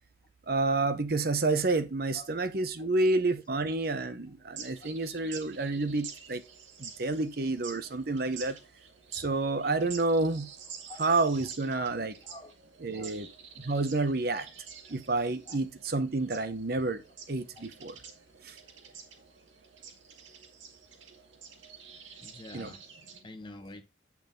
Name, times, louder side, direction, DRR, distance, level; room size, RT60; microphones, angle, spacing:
voice 1, 0.5-6.4 6.8-8.6 9.1-10.5 11.0-12.2 12.8-13.3 13.6-14.5 14.9-17.0 17.3-18.0 18.4-18.6 22.5-22.7, right 3 dB, 50° right, 0.8 m, -29 dB
voice 2, 2.8-3.1 4.8-4.9 10.9-11.0 12.3-12.5 12.9-13.1 15.5-15.6 16.3-16.5 17.6-17.7 22.2-22.8 23.2-23.8, left 2 dB, 25° left, 1.1 m, -47 dB
sound 1, 4.5-23.2, right 6 dB, 80° right, 2.1 m, -48 dB
8.8 x 5.9 x 3.8 m
head